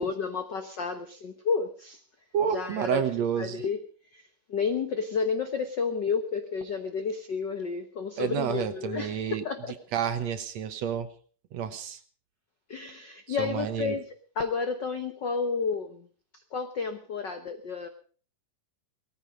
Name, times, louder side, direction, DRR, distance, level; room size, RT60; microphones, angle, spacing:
voice 1, 0.0-2.0 2.5-3.0 3.4-3.8 4.1-9.8 12.7-16.1 16.5-17.9, left 5 dB, 90° left, 8 dB, 0.9 m, -31 dB
voice 2, 2.3-3.6 8.2-9.4 9.9-11.1 11.5-12.0 13.3-13.9, right 8 dB, 65° right, 10 dB, 2.0 m, -29 dB
19.0 x 14.5 x 5.1 m, 0.42 s
omnidirectional pair, 3.8 m